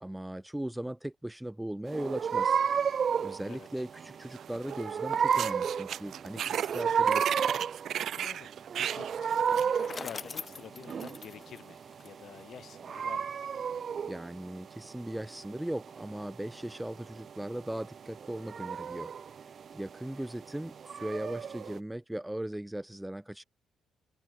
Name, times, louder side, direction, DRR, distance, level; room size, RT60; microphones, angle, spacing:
voice 1, 0.0-2.6 3.2-7.3 14.1-19.1 19.7-23.4, right 1 dB, 5° right, 0.7 m, -38 dB
sound 1, 1.9-21.8, right 7 dB, 50° right, 0.3 m, -33 dB
voice 2, 3.4-3.8 8.1-8.5 8.8-13.4, left 9 dB, 65° left, 6.9 m, -49 dB
sound 2, 4.3-4.8 5.1-9.7, right 10 dB, 65° right, 0.7 m, -35 dB
Bicycle, 9.3-12.5, left 4 dB, 35° left, 1.5 m, -44 dB
cardioid pair, 90°, 0 cm